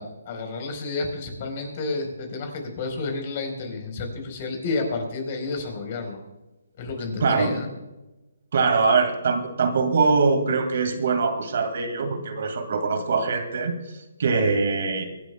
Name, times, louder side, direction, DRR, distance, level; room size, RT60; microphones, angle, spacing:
voice 1, 0.0-6.2 6.8-7.7, left 3 dB, 40° left, 4 dB, 4.2 m, -30 dB
voice 2, 7.2-7.6 8.5-13.7 14.2-15.0, right 4 dB, 60° right, 7 dB, 2.2 m, -22 dB
24.5 x 12.0 x 2.3 m, 1.0 s
hypercardioid pair, 150°, 0 cm